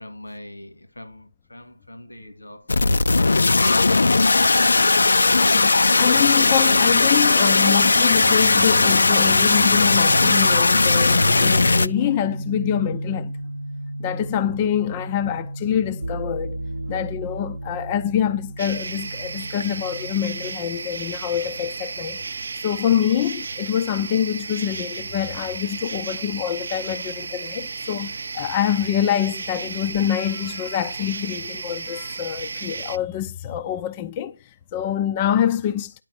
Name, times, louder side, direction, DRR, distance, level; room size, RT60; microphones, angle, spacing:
voice 1, 0.0-3.0 3.5-4.9 26.9-27.1 27.8-28.0, left 1 dB, 85° left, 2.1 m, -41 dB
sound 1, 2.7-11.9, left 3 dB, 65° left, 0.6 m, -17 dB
voice 2, 5.5-13.3 14.0-16.6 16.9-34.4 34.7-35.9, left 10 dB, 20° left, 0.5 m, -25 dB
sound 2, 10.1-20.6, right 1 dB, 85° right, 0.8 m, -32 dB
sound 3, 18.6-33.0, right 4 dB, 55° right, 0.6 m, -33 dB
10.5 x 6.0 x 5.9 m
figure-of-eight pair, 160°, 0 cm